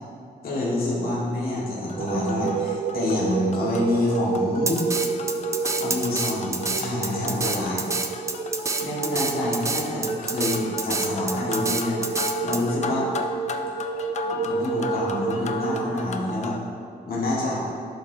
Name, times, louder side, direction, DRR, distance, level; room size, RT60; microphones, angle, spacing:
voice 1, 0.4-4.9 5.8-7.8 8.8-12.0 12.4-13.1 14.3-16.6 17.1-17.6, left 1 dB, 60° left, -6 dB, 1.6 m, -27 dB
sound 1, 1.9-16.6, left 4 dB, 40° left, 0.4 m, -36 dB
sound 2, 2.0-16.0, right 5 dB, 80° right, 0.5 m, -30 dB
Drum kit, 4.7-12.6, right 3 dB, 15° right, 0.4 m, -27 dB
11.5 x 4.6 x 2.7 m, 2.5 s
cardioid pair, 125°, 17 cm